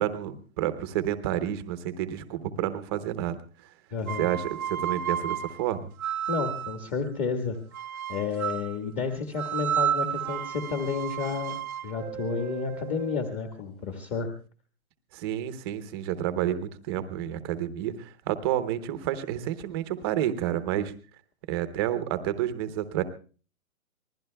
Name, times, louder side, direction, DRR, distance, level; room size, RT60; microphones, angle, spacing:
voice 1, 0.0-3.4 4.2-5.9 15.1-20.9 21.5-23.0, right 11 dB, 15° right, 11 dB, 0.7 m, -30 dB
voice 2, 3.9-4.3 6.3-7.6 8.1-11.6 11.8-14.3, left 5 dB, 25° left, 4 dB, 1.6 m, -31 dB
sound 1, 4.0-6.9 7.7-8.8 9.4-13.4, right 9 dB, 70° right, 0.8 m, -32 dB
26.5 x 20.5 x 2.3 m, 0.39 s
hypercardioid pair, 150°, 44 cm